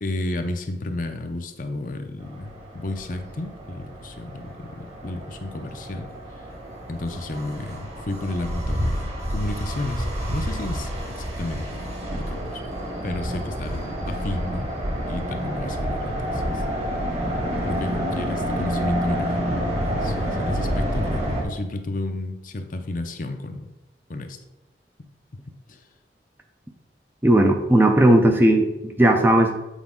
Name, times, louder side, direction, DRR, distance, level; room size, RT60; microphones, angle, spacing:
voice 1, 0.0-6.2 6.9-12.6 13.0-14.8 15.1-16.6 17.7-19.5 19.8-23.7 24.1-24.4 25.3-25.4 25.7-25.8, left 2 dB, 45° left, 6 dB, 0.6 m, -32 dB
sound 1, 2.2-21.4, equal, 35° right, 1.4 m, -29 dB
voice 2, 27.2-29.6, right 1 dB, 10° right, 4 dB, 0.5 m, -17 dB
8.2 x 4.7 x 3.7 m, 1.0 s
head